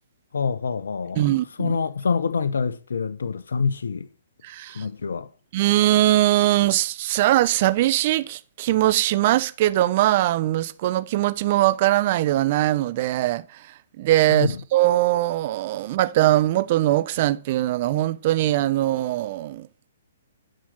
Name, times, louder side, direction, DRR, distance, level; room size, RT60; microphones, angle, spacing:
voice 1, 0.3-1.3 1.6-4.1 4.7-5.3 14.3-14.6, left 5 dB, 75° left, 1.0 m, -26 dB
voice 2, 1.2-1.8 4.4-4.8 5.5-13.6 14.0-19.9, right 15 dB, 45° right, 0.9 m, -21 dB
10.5 x 6.3 x 7.8 m
hypercardioid pair, 130°, 0 cm